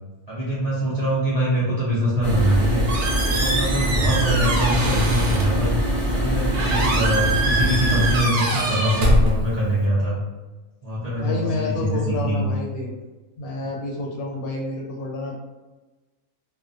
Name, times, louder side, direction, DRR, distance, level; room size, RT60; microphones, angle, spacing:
voice 1, 0.3-2.8 3.2-5.7 6.1-10.2 10.8-12.5, equal, 45° right, -9 dB, 0.5 m, -23 dB
sound 1, 2.2-8.2, equal, 40° left, 0.4 m, -23 dB
Squeak, 2.4-9.9, right 1 dB, 85° right, 1.1 m, -25 dB
voice 2, 6.7-7.2 11.1-12.9 13.4-15.4, left 2 dB, 80° left, -1 dB, 1.1 m, -29 dB
2.5 x 2.1 x 2.5 m, 1.2 s
omnidirectional pair, 1.5 m